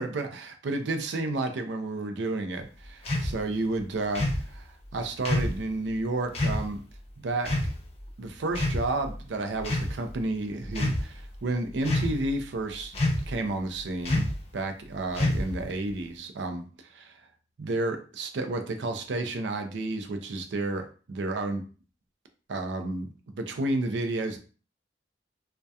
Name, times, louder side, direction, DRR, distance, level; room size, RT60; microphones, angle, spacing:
voice 1, 0.0-6.8 7.2-7.6 8.2-13.0 13.3-17.1 17.6-21.6 22.5-24.4, right 2 dB, 70° right, 6 dB, 0.4 m, -31 dB
sound 1, 3.1-3.3 4.1-4.4 5.3-5.6 6.3-6.6 7.5-7.7 8.5-9.1 9.6-9.9 10.7-11.0 11.8-12.3 12.9-13.3 14.1-14.4 15.1-15.6, left 1 dB, 35° left, 0.5 m, -26 dB
2.7 x 2.1 x 2.2 m, 0.37 s
head